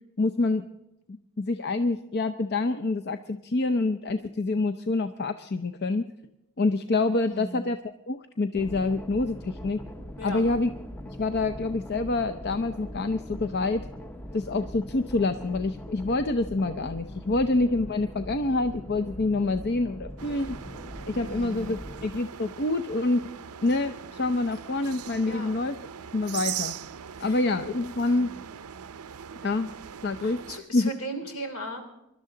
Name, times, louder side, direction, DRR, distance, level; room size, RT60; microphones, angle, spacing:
voice 1, 0.2-0.7 1.1-6.0 6.6-7.8 8.1-9.8 10.2-10.7 11.2-13.8 14.3-20.6 21.1-23.3 23.6-25.8 26.1-26.8 27.2-28.3 29.4-29.7 30.0-30.4 30.7-30.9, left 2 dB, 50° left, 9 dB, 0.6 m, -26 dB
voice 2, 7.3-7.6 10.2-10.4 21.2-21.8 25.2-25.5 27.2-27.4 28.1-28.4 30.2-31.8, right 1 dB, 70° left, 5 dB, 3.0 m, -37 dB
sound 1, 8.5-22.2, equal, 10° left, 0.6 m, -41 dB
sound 2, 20.2-30.6, right 9 dB, 85° right, 0.6 m, -40 dB
23.5 x 12.0 x 3.8 m, 0.93 s
head